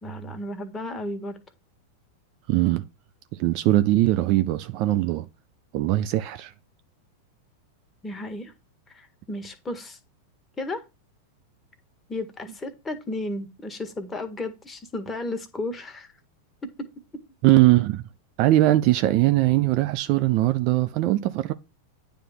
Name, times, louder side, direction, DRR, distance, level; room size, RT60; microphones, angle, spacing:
voice 1, 0.0-1.4 8.0-8.5 8.9-10.0 10.6-10.8 12.1-16.1 17.3-17.4, left 1 dB, 15° left, 1.6 m, -33 dB
voice 2, 2.5-2.8 3.3-5.3 5.7-6.5 17.4-18.0 18.4-21.5, right 16 dB, 50° right, 0.6 m, -21 dB
9.4 x 3.5 x 5.8 m
hypercardioid pair, 95°, 0 cm